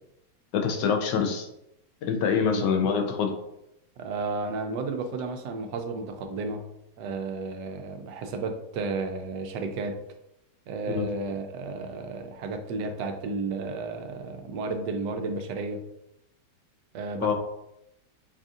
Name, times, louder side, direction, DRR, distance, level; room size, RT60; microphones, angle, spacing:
voice 1, 0.5-1.5 2.0-3.3 10.9-11.1 17.2-17.3, left 6 dB, 85° left, 4 dB, 1.3 m, -25 dB
voice 2, 4.0-6.6 7.0-10.0 10.7-15.8 16.9-17.3, right 3 dB, 80° right, 5 dB, 1.2 m, -32 dB
5.3 x 2.5 x 2.4 m, 0.82 s
omnidirectional pair, 1.8 m